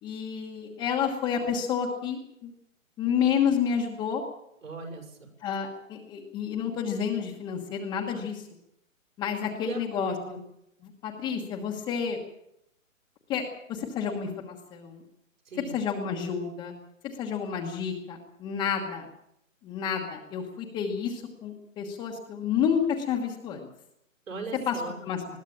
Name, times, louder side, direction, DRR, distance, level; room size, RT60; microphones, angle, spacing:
voice 1, 0.0-2.5 3.0-4.2 5.4-8.5 9.2-10.1 10.8-12.2 13.3-13.4 13.7-15.0 15.7-16.7 17.0-19.1 19.6-23.7 24.7-25.2, left 7 dB, 10° left, -2 dB, 1.2 m, -30 dB
voice 2, 4.6-5.3 9.6-10.4 15.4-15.8 24.3-25.0, right 4 dB, 75° right, 2 dB, 6.7 m, -39 dB
21.0 x 15.5 x 8.8 m, 0.79 s
hypercardioid pair, 160°, 40 cm